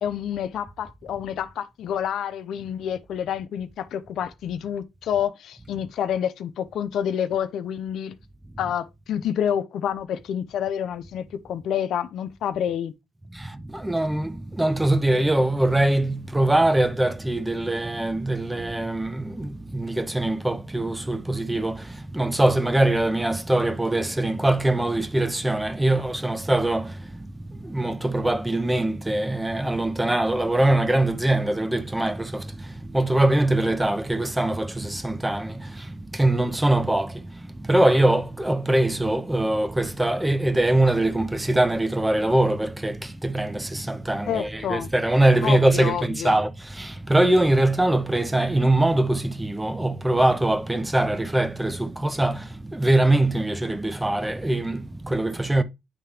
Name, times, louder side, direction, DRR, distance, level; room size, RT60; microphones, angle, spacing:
voice 1, 0.0-8.2 8.6-12.9 44.3-44.9 45.4-46.4, left 9 dB, 75° left, 0.5 m, -28 dB
voice 2, 13.7-21.8 22.1-26.9 27.6-32.4 32.9-35.5 36.1-37.2 37.7-46.5 46.8-55.6, right 1 dB, 10° right, 0.7 m, -22 dB
9.4 x 3.4 x 3.3 m
cardioid pair, 90°, 0 cm